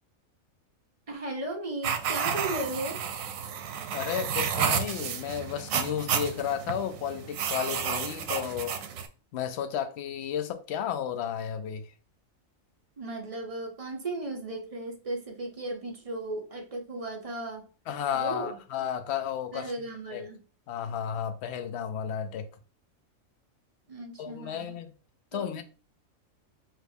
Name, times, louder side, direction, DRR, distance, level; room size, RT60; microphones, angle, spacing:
voice 1, 1.1-3.0 13.0-17.7 18.1-18.6 19.5-20.4 23.9-24.8 25.3-25.6, right 2 dB, 35° right, 0.7 m, -36 dB
sound 1, 1.8-9.1, right 7 dB, 85° right, 1.0 m, -31 dB
voice 2, 3.9-8.8 9.3-11.9 17.9-19.7 20.1-20.2 20.7-22.5 24.2-24.9 25.3-25.6, left 8 dB, 65° left, 0.8 m, -33 dB
5.0 x 2.9 x 2.7 m
omnidirectional pair, 1.4 m